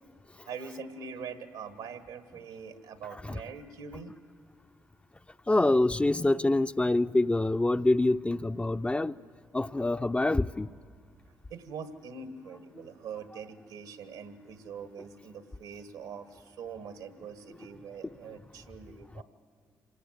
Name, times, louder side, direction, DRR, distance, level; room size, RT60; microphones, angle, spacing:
voice 1, 0.4-4.1 11.5-19.2, right 6 dB, 80° right, 12 dB, 1.5 m, -43 dB
voice 2, 5.5-9.2 9.5-10.7, left 2 dB, 15° left, 11 dB, 0.5 m, -26 dB
26.0 x 18.5 x 8.0 m, 2.1 s
supercardioid pair, 55°, 7 cm